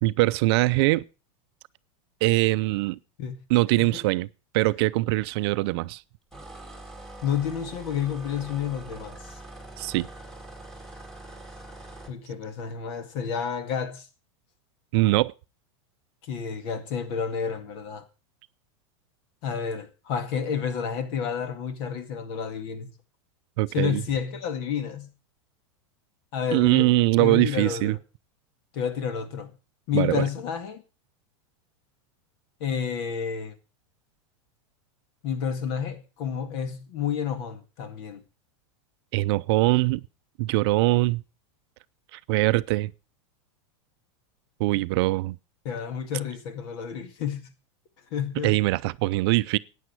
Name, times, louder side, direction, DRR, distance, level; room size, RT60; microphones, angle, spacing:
voice 1, 0.0-1.0 2.2-3.0 3.5-4.3 4.5-6.0 9.8-10.1 14.9-15.3 23.6-24.0 26.5-28.0 29.9-30.2 39.1-40.0 40.4-41.2 42.1-42.9 44.6-45.4 48.4-49.6, right 20 dB, 55° right, 0.5 m, -22 dB
sound 1, 6.3-12.2, right 2 dB, 5° left, 2.3 m, -43 dB
voice 2, 7.2-9.2 12.1-14.0 16.2-18.0 19.4-22.9 23.7-25.1 26.3-26.9 27.2-28.0 28.7-29.5 29.9-30.8 32.6-33.5 35.2-38.2 44.7-44.9 45.6-47.5 48.1-48.6, left 7 dB, 55° left, 2.1 m, -30 dB
14.5 x 9.4 x 4.6 m
supercardioid pair, 140°, 16 cm